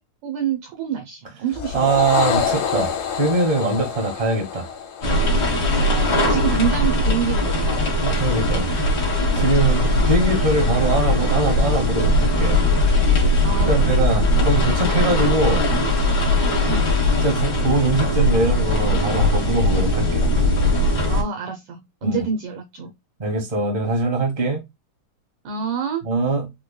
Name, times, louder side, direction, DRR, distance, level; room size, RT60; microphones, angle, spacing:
voice 1, 0.2-1.9 5.9-8.1 13.4-14.2 16.7-16.9 21.1-22.9 25.4-26.0, right 6 dB, 80° right, 1.7 m, -27 dB
sound 1, 1.5-6.1, left 7 dB, 75° left, 2.7 m, -27 dB
voice 2, 1.7-4.7 5.0-5.2 8.0-8.7 9.3-12.6 13.7-15.6 17.2-20.3 22.0-22.2 23.2-24.6 26.0-26.5, right 2 dB, 40° right, 0.5 m, -22 dB
sound 2, 5.0-21.2, left 1 dB, 60° left, 1.1 m, -19 dB
6.2 x 2.2 x 2.2 m
omnidirectional pair, 4.2 m